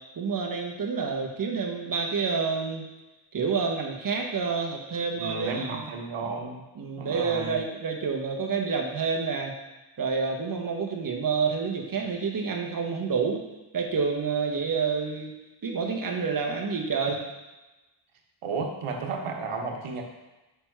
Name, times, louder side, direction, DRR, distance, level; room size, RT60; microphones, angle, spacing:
voice 1, 0.2-2.8 3.3-5.8 6.2-6.3 6.8-9.6 10.0-13.4 13.7-15.3 15.6-17.2, right 5 dB, 40° right, 2 dB, 1.1 m, -28 dB
voice 2, 5.2-6.6 7.0-7.6 18.4-20.0, right 4 dB, 85° right, 1 dB, 1.1 m, -33 dB
5.6 x 4.2 x 4.5 m, 1.1 s
cardioid pair, 90°, 50 cm